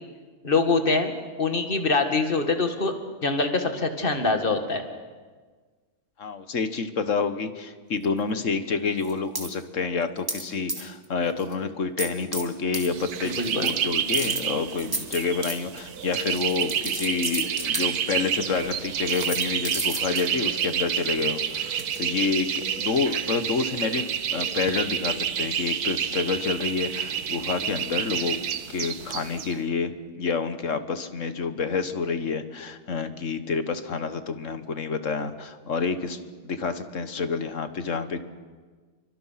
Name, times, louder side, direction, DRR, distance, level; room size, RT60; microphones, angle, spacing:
voice 1, 0.4-1.1 1.4-2.9 3.2-4.8 13.2-13.7, left 3 dB, 35° left, 5 dB, 2.2 m, -24 dB
voice 2, 6.2-13.3 13.6-24.0 24.3-28.4 28.7-38.2, left 4 dB, 55° left, 10 dB, 1.6 m, -28 dB
sound 1, 9.0-9.5 10.3-10.4 10.7-11.0 11.4-11.5 12.0-12.4 12.7-12.9 13.2-13.7 14.1-17.8 18.6-18.7 19.0-22.0, right 1 dB, 15° right, 2.5 m, -33 dB
sound 2, 12.9-29.5, right 9 dB, 75° right, 1.5 m, -29 dB
29.0 x 24.0 x 5.9 m, 1.4 s
omnidirectional pair, 1.7 m